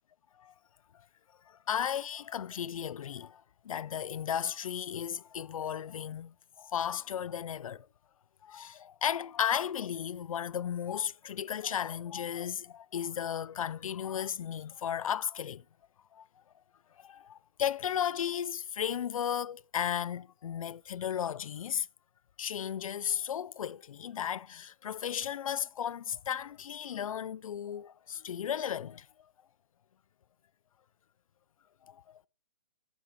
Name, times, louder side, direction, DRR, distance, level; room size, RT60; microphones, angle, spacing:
voice 1, 1.7-7.9 8.4-15.6 16.1-16.2 17.0-21.9 22.4-29.1 31.9-32.2, left 9 dB, 85° left, 0.4 m, -35 dB
8.3 x 7.1 x 7.2 m
hypercardioid pair, 150°, 17 cm